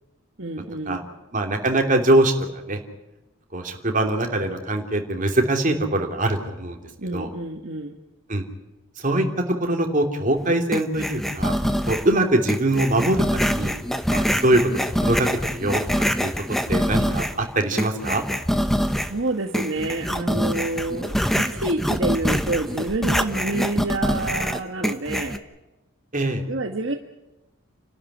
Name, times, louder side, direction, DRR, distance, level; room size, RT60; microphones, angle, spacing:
voice 1, 0.4-1.1 7.0-8.0 19.0-25.4 26.5-26.9, right 2 dB, 60° right, 4 dB, 1.4 m, -28 dB
voice 2, 1.3-2.3 2.7-2.8 3.5-6.8 7.1-7.3 8.3-8.4 9.0-9.3 9.6-11.5 11.9-13.7 14.1-14.6 15.0-15.3 15.5-15.8 16.2-16.3 16.7-18.2 26.1-26.4, right 1 dB, 40° right, 3 dB, 3.0 m, -22 dB
sound 1, 10.7-12.1 12.5-17.4 17.8-19.2 19.5-25.4, equal, ahead, 1.0 m, -24 dB
29.5 x 12.5 x 10.0 m, 1.0 s
head